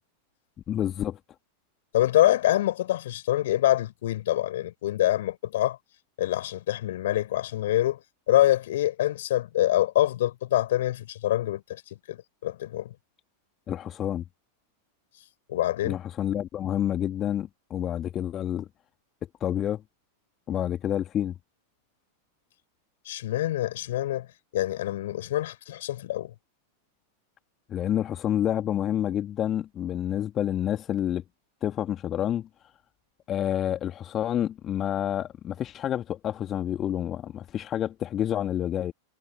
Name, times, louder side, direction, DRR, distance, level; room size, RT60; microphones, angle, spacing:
voice 1, 0.7-1.2 13.7-14.2 15.8-18.7 19.4-19.8 20.5-21.3 27.7-31.2 31.6-32.5 33.3-38.9, left 10 dB, 30° left, 2.4 m, -28 dB
voice 2, 1.9-5.8 6.2-8.0 8.3-11.8 12.1-12.9 15.5-16.0 23.1-24.3 24.5-26.3, left 14 dB, 55° left, 4.4 m, -25 dB
figure-of-eight pair, 90°, 0 cm